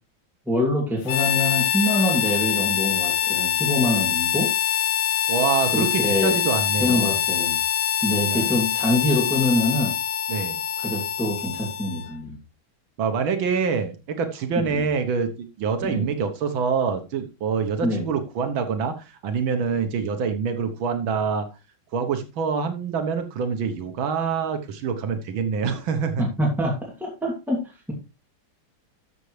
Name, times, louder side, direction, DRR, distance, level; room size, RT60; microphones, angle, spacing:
voice 1, 0.5-4.5 5.7-6.4 6.8-7.6 8.0-9.9 10.8-12.4 14.6-14.8 15.8-16.1 17.8-18.1 26.2-27.9, left 1 dB, ahead, -2 dB, 2.6 m, -25 dB
Harmonica, 1.1-12.1, left 10 dB, 70° left, 0.8 m, -24 dB
voice 2, 5.3-7.2 8.3-8.5 10.3-10.6 13.0-21.5 21.9-26.3, right 6 dB, 90° right, 7 dB, 1.9 m, -26 dB
13.0 x 6.8 x 3.2 m, 0.29 s
omnidirectional pair, 2.1 m